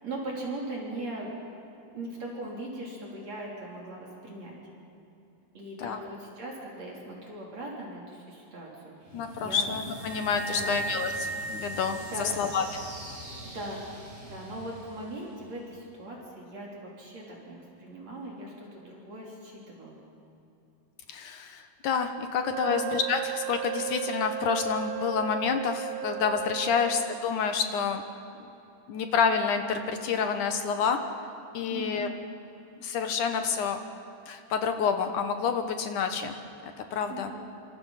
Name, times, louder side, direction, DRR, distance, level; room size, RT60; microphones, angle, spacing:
voice 1, 0.0-1.3 1.9-4.6 5.5-9.6 10.5-10.8 12.0-12.4 13.4-13.8 14.2-20.0 22.6-22.9 26.7-27.0 31.7-32.1 37.1-37.5, right 1 dB, 45° right, -3 dB, 4.6 m, -39 dB
sound 1, 9.0-15.9, equal, 70° right, 9.9 m, -45 dB
voice 2, 9.1-12.6 21.1-28.0 28.9-31.0 31.5-32.1 32.7-33.8 34.3-36.4 36.6-37.3, left 6 dB, 65° left, 7 dB, 2.3 m, -28 dB
sound 2, 10.0-12.7, right 3 dB, 5° left, 3.2 m, -36 dB
Wind instrument woodwind instrument, 22.5-27.2, right 14 dB, 85° right, 1.4 m, -35 dB
28.0 x 25.5 x 5.8 m, 2.8 s
omnidirectional pair, 4.6 m